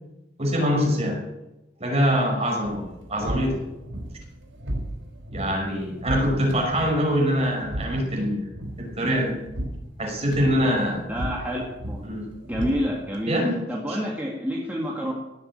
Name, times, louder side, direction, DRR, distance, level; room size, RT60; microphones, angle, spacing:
voice 1, 0.4-1.2 1.8-3.6 5.3-8.5 8.8-9.4 10.0-11.0 12.0-12.3 13.3-13.6 13.9-14.0, equal, 35° right, 0 dB, 5.4 m, -24 dB
sound 1, 2.6-13.2, equal, 85° right, 5.0 m, -35 dB
voice 2, 11.1-11.6 11.9-12.0 12.4-13.4 13.7-15.1, equal, 10° right, -3 dB, 2.2 m, -28 dB
17.5 x 7.7 x 8.8 m, 0.98 s
head